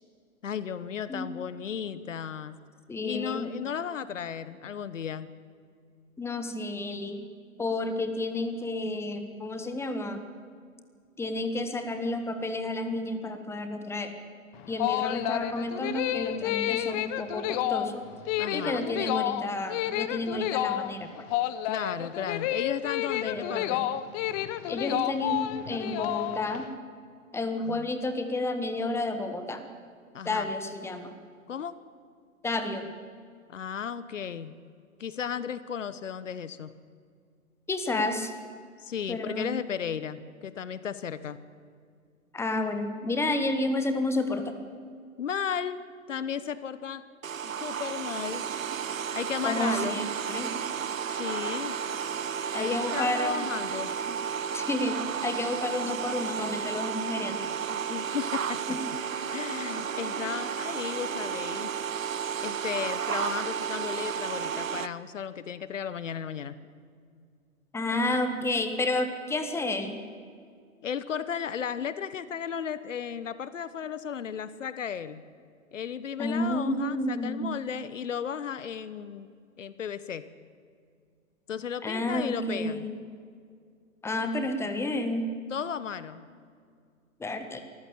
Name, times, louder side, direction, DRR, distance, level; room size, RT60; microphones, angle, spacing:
voice 1, 0.4-2.6 3.0-5.3 18.4-18.9 21.6-23.9 27.6-27.9 30.1-30.5 31.5-31.8 33.5-34.5 35.0-36.7 37.9-38.0 38.8-41.4 45.2-45.8 46.1-47.1 47.4-48.5 49.1-50.0 51.1-51.8 52.5-53.9 57.7-58.6 59.3-61.7 62.4-66.6 70.8-75.2 75.7-79.3 79.6-80.3 81.5-82.8 85.5-86.2, left 8 dB, 65° left, 15 dB, 1.1 m, -35 dB
voice 2, 2.9-3.5 6.2-7.2 7.6-10.2 11.2-14.2 14.7-18.1 18.5-21.3 23.2-23.9 24.7-26.7 27.3-29.6 30.2-31.1 32.4-32.9 37.7-38.3 39.1-39.5 42.3-44.5 49.4-50.5 52.5-53.5 54.5-55.0 55.2-57.5 58.7-58.8 67.7-70.0 76.2-77.5 81.8-83.0 84.0-85.3 87.2-87.6, left 2 dB, 5° left, 8 dB, 1.5 m, -31 dB
sound 1, 14.5-26.7, left 13 dB, 30° left, 0.9 m, -30 dB
sound 2, 47.2-64.9, right 7 dB, 75° right, 1.0 m, -32 dB
24.5 x 14.5 x 8.6 m, 2.2 s
figure-of-eight pair, 115°, 40 cm